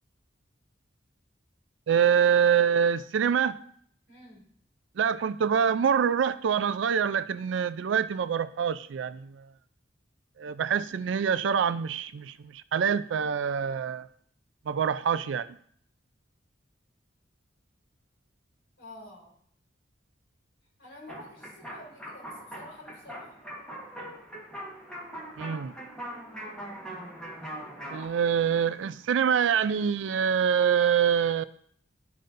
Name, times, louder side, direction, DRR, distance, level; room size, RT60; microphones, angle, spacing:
voice 1, 1.9-3.6 5.0-9.4 10.4-14.1 14.7-15.5 25.4-25.7 27.9-31.4, right 7 dB, 90° right, 14 dB, 0.4 m, -25 dB
voice 2, 4.1-4.5 18.8-19.4 20.8-23.4, left 1 dB, 70° left, -2 dB, 2.5 m, -49 dB
sound 1, 21.1-28.1, equal, 5° left, 1.3 m, -41 dB
11.5 x 4.0 x 2.6 m, 0.63 s
head